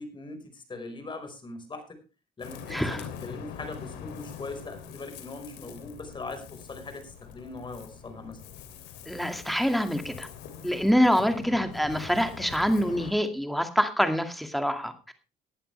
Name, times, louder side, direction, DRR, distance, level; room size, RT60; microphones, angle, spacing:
voice 1, 0.0-1.9 2.4-8.4, left 3 dB, 30° left, 7 dB, 4.7 m, -40 dB
Ocean, 2.4-13.1, left 8 dB, 85° left, 3.0 m, -43 dB
voice 2, 2.7-3.1 9.1-10.3 10.6-14.9, equal, ahead, 7 dB, 2.2 m, -25 dB
19.0 x 11.0 x 3.3 m, 0.31 s
cardioid pair, 110°, 17 cm